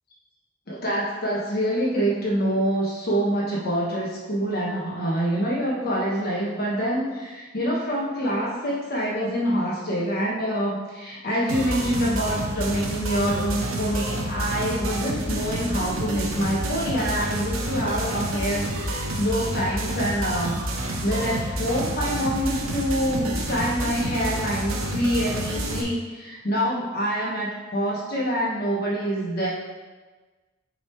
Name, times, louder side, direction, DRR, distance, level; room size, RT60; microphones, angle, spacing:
voice 1, 0.7-29.5, equal, 50° left, -4 dB, 1.1 m, -26 dB
sound 1, 11.5-25.8, right 1 dB, 80° right, 0.9 m, -29 dB
6.5 x 3.5 x 4.4 m, 1.3 s
head